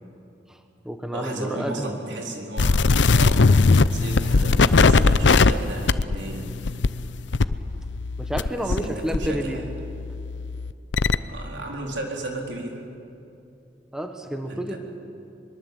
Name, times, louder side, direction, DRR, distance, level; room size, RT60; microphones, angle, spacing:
voice 1, 0.5-2.0 8.2-9.7 13.9-14.8, equal, 5° right, 5 dB, 1.4 m, -30 dB
voice 2, 1.1-6.6 8.5-9.6 11.3-12.9 14.5-14.8, right 1 dB, 85° right, 1 dB, 4.1 m, -34 dB
sound 1, 2.6-8.9 9.1-11.2, left 4 dB, 85° left, 0.7 m, -20 dB
23.0 x 22.5 x 8.4 m, 2.7 s
head